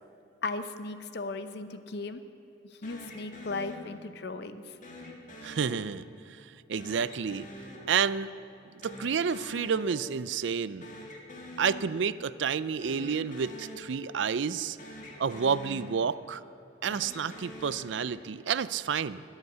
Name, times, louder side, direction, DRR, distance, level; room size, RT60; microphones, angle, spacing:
voice 1, 0.4-2.2 2.7-4.8, left 3 dB, 65° left, 10 dB, 0.8 m, -36 dB
sound 1, 2.8-4.3 4.8-6.4 6.8-8.6 8.8-10.4 10.6-12.3 12.7-14.5 14.8-16.4 16.8-18.5, left 1 dB, 45° left, 1.7 m, -46 dB
voice 2, 5.4-7.5 7.9-8.3 8.8-10.9 11.6-14.8 15.2-16.4 16.8-19.2, right 6 dB, 75° right, 16 dB, 0.4 m, -30 dB
21.0 x 8.2 x 8.0 m, 2.7 s
head